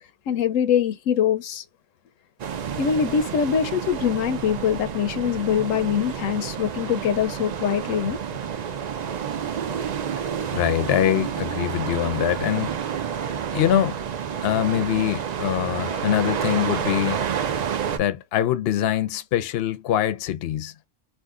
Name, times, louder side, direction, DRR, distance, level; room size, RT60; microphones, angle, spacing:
voice 1, 0.3-1.6 2.8-8.2, left 8 dB, 85° left, 1.0 m, -23 dB
sound 1, 2.4-18.0, right 8 dB, 70° right, 0.4 m, -29 dB
voice 2, 10.5-12.8 13.5-14.0 14.4-17.2 18.0-20.9, left 11 dB, 60° left, 0.7 m, -23 dB
2.6 x 2.5 x 3.5 m
omnidirectional pair, 1.3 m